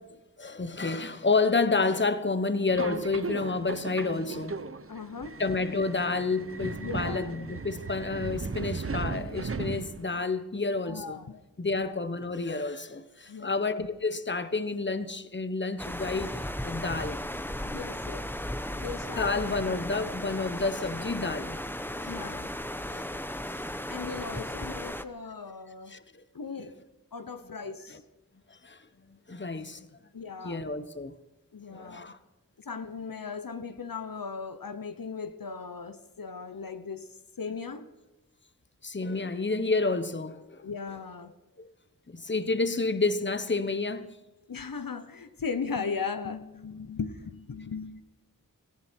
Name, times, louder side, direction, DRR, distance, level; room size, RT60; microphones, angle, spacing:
voice 1, 0.4-4.6 5.4-11.2 11.6-17.2 18.6-18.7 19.2-21.6 22.0-22.4 22.9-23.1 23.6-23.7 25.9-26.2 27.9-28.0 28.5-29.9 30.4-31.1 31.7-32.2 38.8-40.6 41.6-41.7 42.1-44.1, left 3 dB, 35° left, 1.2 m, -30 dB
Subway metro underground, 2.7-10.2, right 4 dB, 40° right, 0.9 m, -36 dB
voice 2, 4.9-5.4 6.8-7.3 10.9-11.4 11.7-11.9 13.3-13.6 17.6-18.3 18.7-19.8 22.0-22.5 23.9-25.9 26.3-26.7 27.1-28.0 30.1-30.7 31.5-32.1 32.6-37.1 37.4-37.9 40.6-41.3 44.5-48.0, left 5 dB, 75° left, 1.1 m, -37 dB
sound 1, 15.8-25.0, left 1 dB, 5° left, 1.0 m, -36 dB
18.0 x 15.5 x 4.6 m
wide cardioid pair, 50°, 34 cm